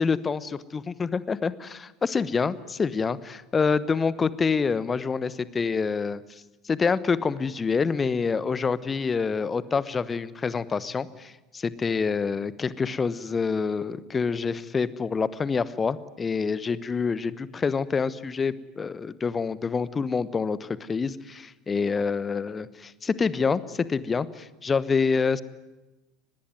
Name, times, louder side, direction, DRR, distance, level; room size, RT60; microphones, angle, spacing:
voice 1, 0.0-6.2 6.7-25.4, left 5 dB, 20° left, 18 dB, 1.1 m, -27 dB
24.0 x 20.5 x 9.5 m, 1.1 s
figure-of-eight pair, 75°, 0 cm